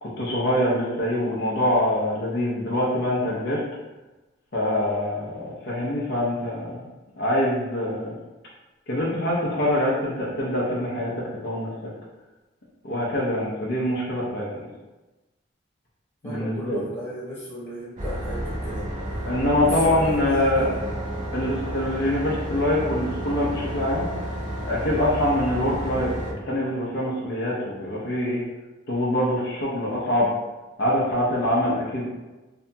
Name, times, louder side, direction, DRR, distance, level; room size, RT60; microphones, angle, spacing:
voice 1, 0.0-3.6 4.5-6.8 7.2-8.1 8.9-11.7 12.8-14.7 16.2-16.8 19.2-20.7 21.3-24.1 24.7-28.4 28.9-30.3 30.8-32.0, left 1 dB, 55° left, -6 dB, 0.6 m, -24 dB
voice 2, 16.2-18.9 19.6-20.7, equal, 15° left, -10 dB, 0.9 m, -35 dB
sound 1, 18.0-26.3, right 1 dB, 40° right, 0.5 m, -31 dB
2.7 x 2.7 x 2.2 m, 1.1 s
head